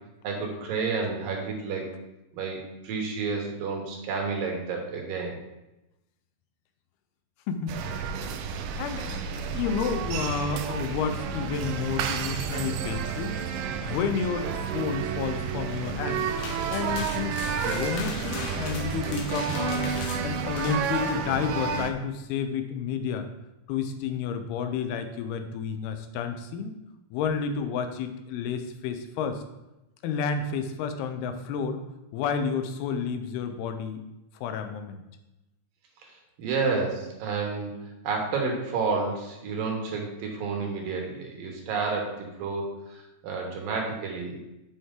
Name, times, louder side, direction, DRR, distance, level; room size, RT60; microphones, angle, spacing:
voice 1, 0.2-1.9 2.3-5.4 36.4-37.7 38.0-42.6 42.9-44.4, right 4 dB, 70° right, 1 dB, 2.7 m, -30 dB
voice 2, 7.5-7.9 8.8-13.4 13.8-16.3 16.7-19.9 20.2-23.3 23.7-26.8 27.1-29.4 30.0-31.8 32.1-34.0 34.4-35.0, left 6 dB, 90° left, 7 dB, 2.7 m, -30 dB
sound 1, 7.7-21.9, right 7 dB, 90° right, 1.9 m, -31 dB
sound 2, 15.8-21.2, left 5 dB, 75° left, 2.0 m, -40 dB
8.4 x 5.7 x 3.7 m, 0.94 s
omnidirectional pair, 4.4 m